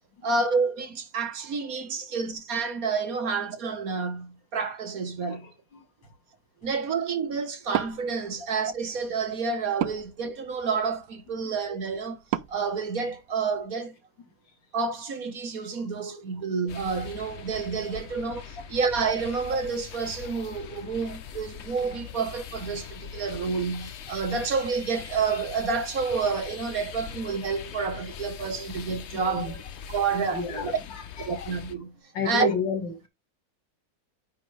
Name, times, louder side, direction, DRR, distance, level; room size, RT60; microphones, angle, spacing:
voice 1, 0.2-5.5 6.6-12.2 12.5-13.9 14.7-29.5 29.9-30.8 31.2-31.9 32.2-32.5, right 5 dB, 55° right, 1.5 m, -29 dB
voice 2, 5.3-5.8 11.4-11.5 29.2-29.5 30.3-31.5 32.1-33.1, left 6 dB, 85° left, 2.7 m, -32 dB
Wood, 7.6-13.7, right 12 dB, 80° right, 1.3 m, -37 dB
sound 1, 16.7-31.7, left 8 dB, 65° left, 0.6 m, -42 dB
9.5 x 4.3 x 3.4 m
omnidirectional pair, 1.9 m